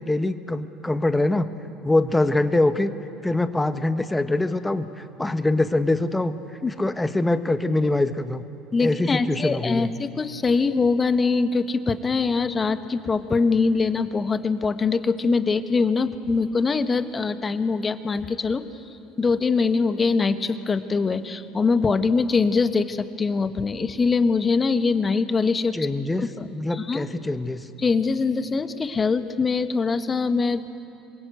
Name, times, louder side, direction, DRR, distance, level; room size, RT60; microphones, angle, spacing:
voice 1, 0.1-1.5 1.8-2.9 3.2-6.3 6.7-8.4 8.8-9.9 25.7-26.2 26.5-27.7, left 2 dB, 10° left, 10 dB, 1.4 m, -23 dB
voice 2, 8.7-18.6 19.2-25.8 26.2-27.1 27.8-30.7, left 4 dB, 30° left, 10 dB, 1.5 m, -23 dB
27.0 x 22.5 x 8.3 m, 2.7 s
figure-of-eight pair, 60°, 0 cm